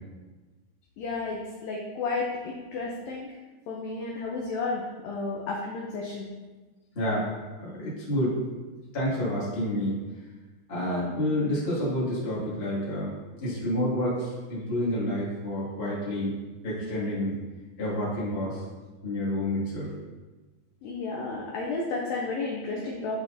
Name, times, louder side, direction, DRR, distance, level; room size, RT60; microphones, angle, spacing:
voice 1, 1.0-3.3 3.7-6.3 20.8-23.2, left 3 dB, 85° left, -2 dB, 2.0 m, -32 dB
voice 2, 6.9-7.2 7.6-8.4 8.9-10.0 10.7-13.1 13.4-16.3 16.6-17.4 17.8-18.6 19.0-19.9, left 1 dB, 35° left, -8 dB, 0.9 m, -29 dB
9.7 x 4.5 x 2.6 m, 1.2 s
omnidirectional pair, 4.9 m